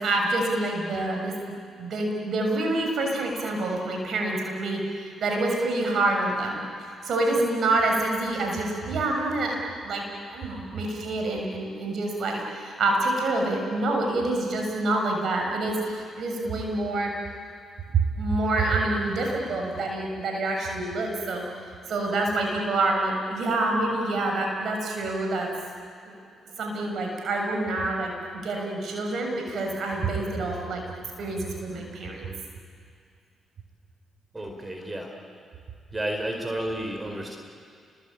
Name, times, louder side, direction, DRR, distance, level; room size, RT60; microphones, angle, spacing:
voice 1, 0.0-6.6 7.0-10.0 10.3-17.1 17.9-21.5 21.9-25.5 26.1-26.2 26.6-30.8 31.2-32.3, right 2 dB, 65° right, 1 dB, 6.7 m, -27 dB
voice 2, 34.3-35.1 35.9-37.4, right 1 dB, 25° right, 3 dB, 4.7 m, -31 dB
30.0 x 22.0 x 8.9 m, 2.3 s
supercardioid pair, 50°, 0 cm